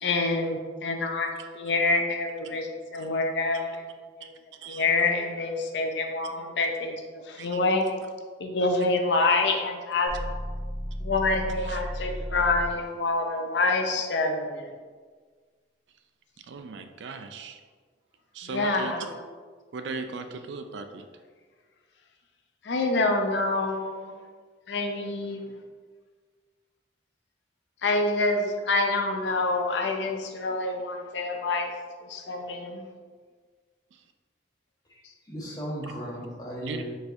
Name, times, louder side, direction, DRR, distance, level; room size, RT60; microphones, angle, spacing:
voice 1, 0.0-3.9 4.2-4.3 4.7-7.9 8.4-10.1 11.0-14.7 18.5-19.1 22.6-24.2 24.7-25.6 27.8-31.7 32.0-32.9, left 3 dB, 75° left, 3 dB, 0.5 m, -27 dB
sound 1, 10.1-12.9, equal, 30° right, 1.0 m, -34 dB
voice 2, 16.5-17.6 18.3-18.9 19.7-21.1 33.9-34.0 36.6-36.8, right 4 dB, 75° right, 7 dB, 0.4 m, -38 dB
voice 3, 34.9-36.8, equal, 20° left, -5 dB, 1.0 m, -36 dB
4.6 x 4.2 x 2.6 m, 1.5 s
head